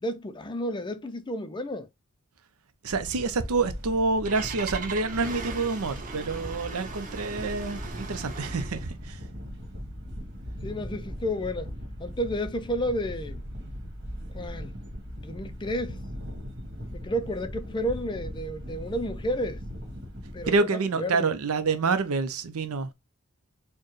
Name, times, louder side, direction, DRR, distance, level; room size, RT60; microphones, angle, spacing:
voice 1, 0.0-1.9 10.6-11.7 12.0-13.4 14.3-14.7 15.2-16.0 16.9-19.6 20.3-21.3, equal, 20° left, 0.4 m, -31 dB
voice 2, 2.8-9.3 20.5-22.9, right 4 dB, 75° right, 0.6 m, -27 dB
sound 1, 2.9-20.5, equal, 55° right, 1.6 m, -39 dB
Engine starting, 3.8-8.9, right 5 dB, 35° right, 0.8 m, -40 dB
4.5 x 2.2 x 3.1 m
head